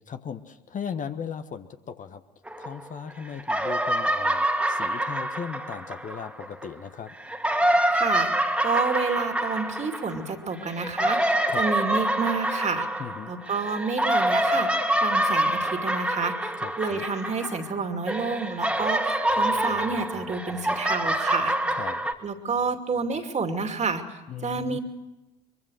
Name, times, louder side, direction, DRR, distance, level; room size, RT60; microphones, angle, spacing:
voice 1, 0.0-2.2 2.6-7.1 10.6-10.7 11.5-11.7 13.0-13.3 16.6-17.0 21.7-22.1 24.3-24.8, left 7 dB, 40° left, 8 dB, 1.3 m, -37 dB
sound 1, 2.5-3.1 3.4-6.7 7.2-17.8 18.1-22.1, right 1 dB, 5° right, 2.1 m, -26 dB
voice 2, 7.6-8.3 8.6-12.9 13.3-14.7 15.0-21.5 22.2-24.0 24.4-24.8, right 5 dB, 35° right, 6 dB, 2.7 m, -29 dB
23.5 x 23.5 x 6.5 m, 1.0 s
figure-of-eight pair, 60°, 21 cm